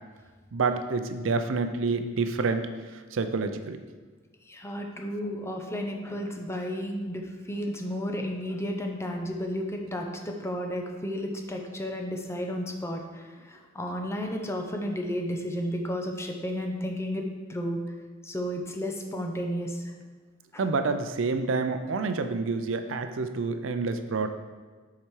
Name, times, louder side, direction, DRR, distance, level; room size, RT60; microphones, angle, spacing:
voice 1, 0.5-2.7 3.1-3.8 20.6-24.3, right 4 dB, 85° right, 8 dB, 0.5 m, -28 dB
voice 2, 4.5-17.2 17.5-17.8 18.2-19.9 20.5-20.7, equal, 15° left, 2 dB, 0.7 m, -32 dB
7.3 x 4.9 x 4.7 m, 1.4 s
head